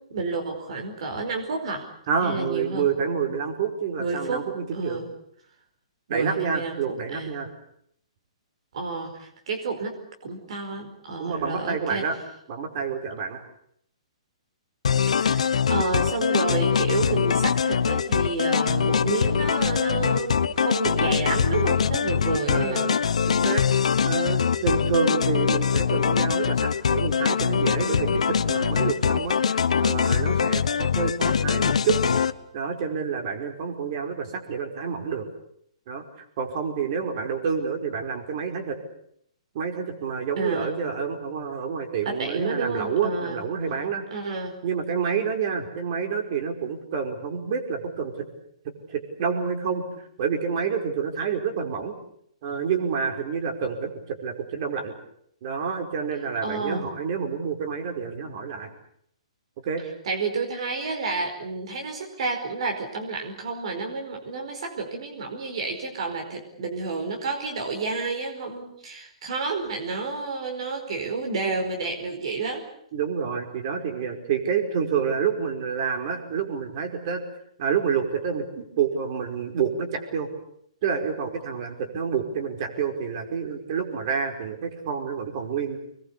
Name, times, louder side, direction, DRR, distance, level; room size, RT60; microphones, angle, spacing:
voice 1, 0.0-1.9 2.2-2.9 4.0-5.1 6.1-7.5 8.7-12.1 15.1-22.9 40.4-40.8 42.0-43.4 44.1-44.6 56.4-56.9 60.0-72.6, right 4 dB, 60° right, 3 dB, 4.9 m, -30 dB
voice 2, 2.1-5.0 6.1-7.5 11.2-12.2 12.5-13.4 22.5-23.0 23.3-23.7 24.0-32.0 32.5-35.3 35.9-36.1 36.4-38.8 39.5-44.0 44.6-48.3 48.9-49.8 50.2-51.9 52.4-54.9 55.4-58.7 59.6-59.8 72.9-77.2 77.6-80.3 80.8-85.8, right 6 dB, 45° right, 4 dB, 5.1 m, -28 dB
sound 1, 14.8-32.3, left 7 dB, 80° left, 1.2 m, -23 dB
25.5 x 21.5 x 8.5 m, 0.70 s
hypercardioid pair, 150°, 3 cm